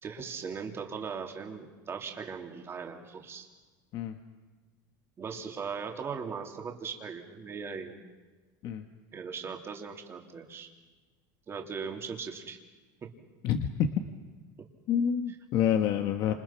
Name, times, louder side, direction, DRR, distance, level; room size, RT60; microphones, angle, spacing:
voice 1, 0.0-3.5 5.2-7.9 9.1-10.7 11.5-12.6 13.0-13.1 16.3-16.4, right 5 dB, 25° right, 3 dB, 3.1 m, -39 dB
voice 2, 13.4-13.9 14.9-16.3, left 9 dB, 50° left, 6 dB, 1.5 m, -27 dB
29.0 x 27.5 x 6.0 m, 1.3 s
supercardioid pair, 140°, 10 cm